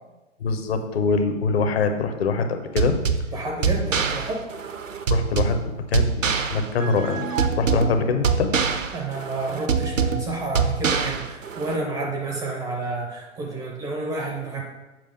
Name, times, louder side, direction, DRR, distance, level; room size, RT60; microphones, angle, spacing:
voice 1, 0.4-2.9 5.1-5.6 5.9-7.3 7.6-8.5, left 4 dB, 50° left, 7 dB, 1.0 m, -23 dB
sound 1, 2.8-11.8, right 5 dB, 80° right, 0.8 m, -25 dB
voice 2, 3.3-4.5 8.9-14.6, right 3 dB, 10° right, 0 dB, 0.5 m, -30 dB
7.7 x 5.1 x 5.1 m, 1.1 s
figure-of-eight pair, 115°, 38 cm